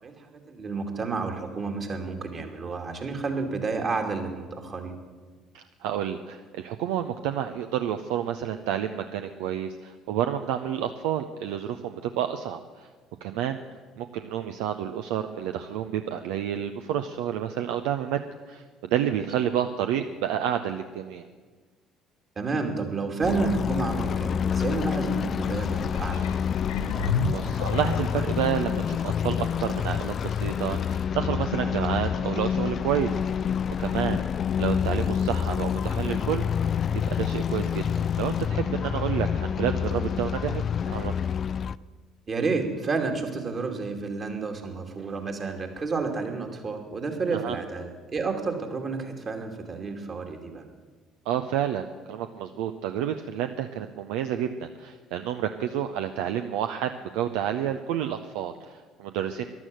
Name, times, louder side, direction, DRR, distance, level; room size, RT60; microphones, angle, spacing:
voice 1, 0.0-4.9 22.4-26.2 42.3-50.6, right 4 dB, 40° right, 4 dB, 2.6 m, -30 dB
voice 2, 5.5-12.9 13.2-13.6 14.0-18.2 18.5-21.2 26.9-33.4 33.8-34.2 34.6-36.5 37.0-37.8 38.2-41.1 47.3-47.6 51.3-59.5, right 10 dB, 70° right, 8 dB, 0.6 m, -30 dB
sound 1, 23.2-41.8, left 8 dB, 45° left, 0.4 m, -27 dB
sound 2, 25.8-28.4 29.0-29.1, left 4 dB, 75° left, 0.9 m, -31 dB
13.5 x 11.5 x 7.7 m, 1.4 s
hypercardioid pair, 55°, 0 cm